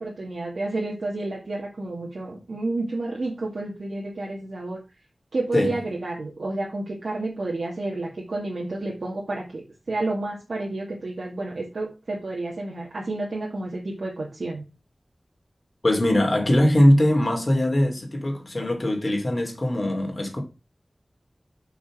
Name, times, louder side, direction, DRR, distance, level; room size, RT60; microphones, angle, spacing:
voice 1, 0.0-4.8 5.3-9.6 9.9-14.7, right 2 dB, 85° right, 2.2 m, -30 dB
voice 2, 15.8-20.4, left 1 dB, 45° left, 3.0 m, -21 dB
6.3 x 5.9 x 6.3 m
wide cardioid pair, 70°, 0 cm